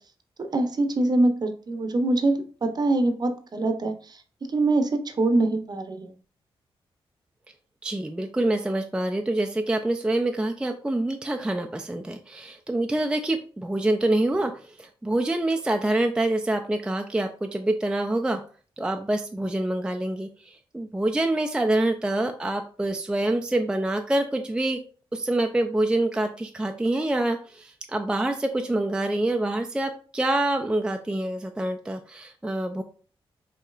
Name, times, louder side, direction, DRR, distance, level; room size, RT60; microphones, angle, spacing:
voice 1, 0.4-3.9 4.5-6.1, right 2 dB, 45° right, 7 dB, 0.7 m, -24 dB
voice 2, 7.8-18.4 18.8-24.8 25.1-32.8, right 1 dB, 10° right, 4 dB, 0.3 m, -26 dB
5.3 x 2.8 x 2.4 m, 0.40 s
cardioid pair, 80°, 10 cm